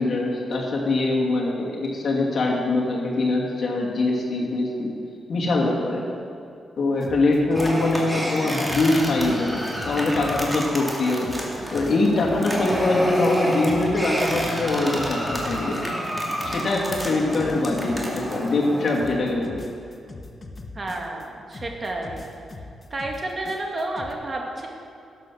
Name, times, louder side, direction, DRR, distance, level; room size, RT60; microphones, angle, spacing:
voice 1, 0.0-4.9 5.3-6.2 6.8-9.6 9.8-11.4 11.7-15.8 16.5-19.6, left 2 dB, 60° left, -2 dB, 2.5 m, -23 dB
sound 1, 7.0-8.4 8.6-10.9 11.2-16.1 16.4-18.7 18.9-21.3 21.5-24.1, left 3 dB, 35° left, 1.3 m, -41 dB
sound 2, 7.5-19.1, equal, 10° right, 2.7 m, -29 dB
voice 2, 20.7-22.2 22.9-24.7, right 2 dB, 40° right, 0 dB, 2.1 m, -31 dB
12.0 x 7.8 x 6.4 m, 2.5 s
cardioid pair, 60°, 0 cm